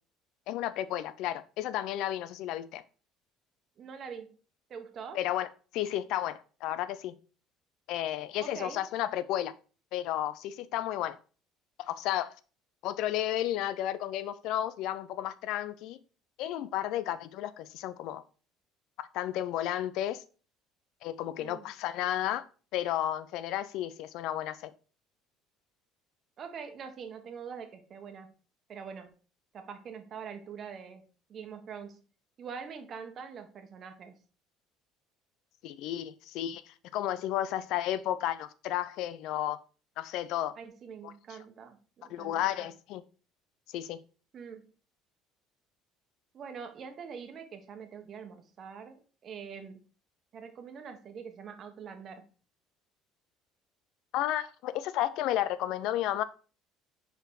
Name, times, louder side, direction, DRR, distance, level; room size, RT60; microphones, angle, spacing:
voice 1, 0.5-2.8 5.1-5.5 5.7-7.2 7.9-9.5 9.9-11.2 11.8-12.3 12.8-16.0 16.4-18.2 19.0-20.2 21.0-22.4 22.7-24.7 35.6-39.6 40.0-40.5 42.1-43.0 43.7-44.0 54.1-56.2, left 12 dB, 70° left, 0.5 m, -32 dB
voice 2, 3.8-4.3 4.7-5.2 8.4-8.8 21.4-21.6 26.4-28.3 28.7-29.1 29.5-31.0 31.3-32.0 32.4-34.2 40.6-42.7 44.3-44.7 46.3-49.8 50.3-52.3, right 6 dB, 45° right, 1.2 m, -44 dB
5.2 x 4.3 x 4.7 m
supercardioid pair, 100°, 0 cm